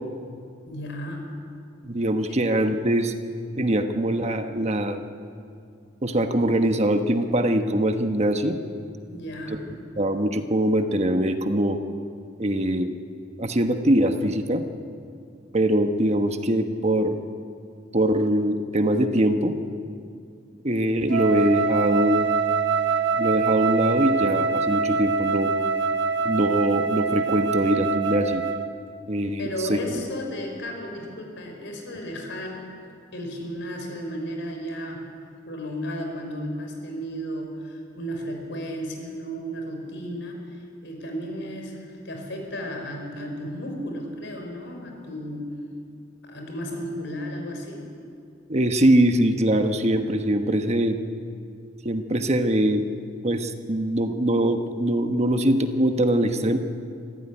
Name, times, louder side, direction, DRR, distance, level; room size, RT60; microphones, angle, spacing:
voice 1, 0.7-1.3 9.1-9.7 29.4-32.6 33.1-35.0 35.5-45.5 46.2-47.9, equal, 70° left, 2 dB, 5.4 m, -34 dB
voice 2, 1.8-3.1 3.6-5.0 6.0-8.6 10.0-11.8 12.4-12.9 13.4-14.6 15.5-17.2 17.9-19.6 20.6-22.3 23.2-25.5 26.2-28.4 29.1-29.8 48.5-51.0 51.8-52.9 53.2-56.6, right 1 dB, 35° right, 7 dB, 1.2 m, -22 dB
Wind instrument woodwind instrument, 21.1-28.7, right 5 dB, 65° right, 1.2 m, -24 dB
25.5 x 14.5 x 9.9 m, 2.4 s
head